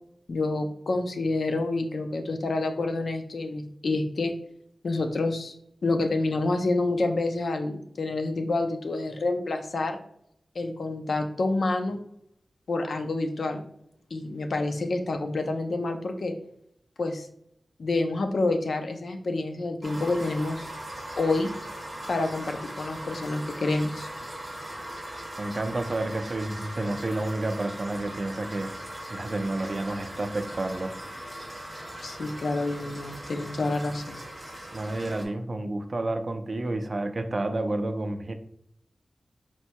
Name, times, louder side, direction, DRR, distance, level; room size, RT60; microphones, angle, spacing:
voice 1, 0.3-4.3 4.8-5.5 5.8-10.0 10.5-12.0 12.7-13.6 14.1-16.3 17.0-17.3 17.8-20.7 21.2-21.5 22.1-24.1 32.0-34.2, left 2 dB, 70° left, 6 dB, 0.5 m, -28 dB
sound 1, 19.8-35.2, right 1 dB, 15° right, 1.2 m, -39 dB
voice 2, 25.4-28.7 29.1-30.9 34.7-38.3, right 2 dB, 40° right, 6 dB, 0.4 m, -30 dB
4.4 x 4.3 x 2.2 m, 0.72 s
wide cardioid pair, 105°, 0 cm